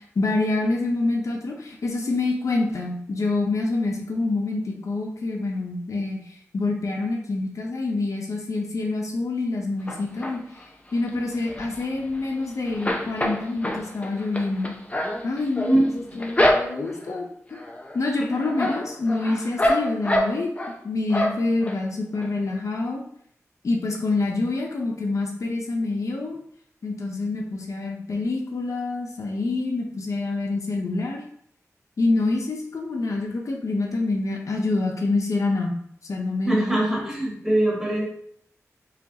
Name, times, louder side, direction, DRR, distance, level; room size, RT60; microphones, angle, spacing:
voice 1, 0.0-6.2 6.5-10.4 10.9-14.7 15.2-17.3 17.9-20.5 20.8-23.0 23.6-26.4 26.8-31.2 32.0-35.8 36.1-36.8, left 3 dB, 65° left, 0 dB, 0.6 m, -26 dB
sound 1, 9.9-10.6 11.1-12.4 12.7-17.1 17.5-18.0 18.3-20.8 21.1-21.8 22.2-22.3 22.5-22.6, left 1 dB, 25° left, 0.6 m, -26 dB
voice 2, 36.4-38.0, right 1 dB, 5° right, -4 dB, 1.4 m, -22 dB
4.9 x 2.3 x 2.8 m, 0.66 s
wide cardioid pair, 60°, 6 cm